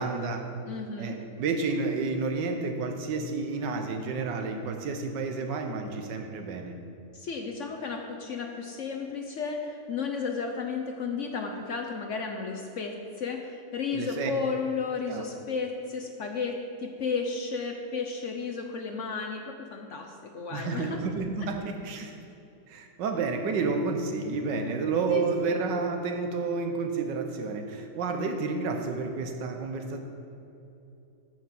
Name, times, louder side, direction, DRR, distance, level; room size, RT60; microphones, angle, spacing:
voice 1, 0.0-0.5 1.0-6.8 13.9-14.3 15.1-15.2 20.5-22.1 22.7-30.0, right 4 dB, 90° right, 5 dB, 1.6 m, -30 dB
voice 2, 0.7-1.2 7.1-21.0 25.1-25.6, left 5 dB, 60° left, 3 dB, 0.8 m, -33 dB
9.2 x 5.0 x 7.4 m, 2.9 s
omnidirectional pair, 1.9 m